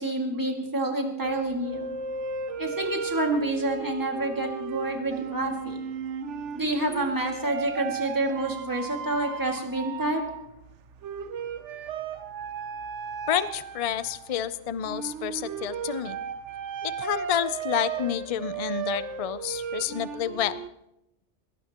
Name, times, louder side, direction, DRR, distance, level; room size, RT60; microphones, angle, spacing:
voice 1, 0.0-1.9 2.6-5.8 6.5-10.2, right 2 dB, 15° right, 1 dB, 2.1 m, -28 dB
sound 1, 1.2-20.7, right 6 dB, 85° right, 1.1 m, -35 dB
voice 2, 13.3-16.2 16.8-20.5, left 10 dB, 45° left, 14 dB, 0.5 m, -29 dB
21.5 x 18.0 x 3.0 m, 0.87 s
omnidirectional pair, 1.2 m